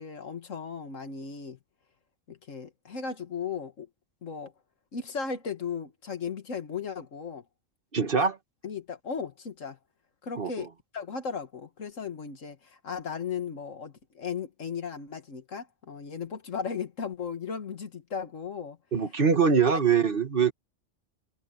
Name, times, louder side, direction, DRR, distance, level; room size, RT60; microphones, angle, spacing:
voice 1, 0.0-1.6 2.3-3.9 4.2-4.5 4.9-7.4 8.6-9.8 10.2-10.7 10.9-18.8, left 6 dB, 80° left, 2.0 m, -36 dB
voice 2, 7.9-8.4 10.4-10.7 18.9-20.5, right 6 dB, 45° right, 1.9 m, -23 dB
omnidirectional pair, 1.3 m